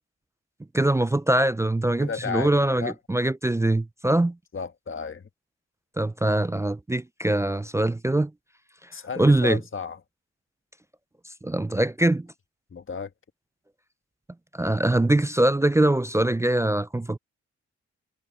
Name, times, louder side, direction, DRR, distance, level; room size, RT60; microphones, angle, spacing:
voice 1, 0.7-4.4 6.0-8.3 9.2-9.6 11.4-12.3 14.5-17.2, right 1 dB, 10° right, 0.4 m, -23 dB
voice 2, 2.0-2.5 2.8-2.9 4.5-5.3 8.9-10.0 12.7-13.1, left 6 dB, 45° left, 1.5 m, -33 dB
cardioid pair, 75°, 29 cm